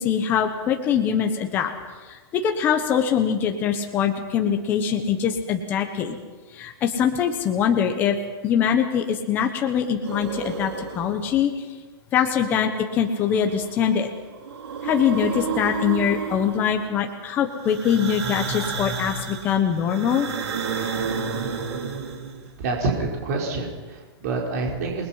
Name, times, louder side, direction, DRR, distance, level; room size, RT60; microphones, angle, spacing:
voice 1, 0.0-1.7 2.1-6.1 6.5-8.2 8.4-11.5 12.1-14.1 14.8-20.3, left 8 dB, 15° left, 4 dB, 1.1 m, -23 dB
sound 1, 10.0-11.3 13.0-14.0 14.3-16.9 17.6-22.5, right 5 dB, 85° right, 4.8 m, -31 dB
voice 2, 22.6-25.1, right 3 dB, 35° right, -1 dB, 4.4 m, -27 dB
28.5 x 21.0 x 5.8 m, 1.3 s
hypercardioid pair, 175°, 14 cm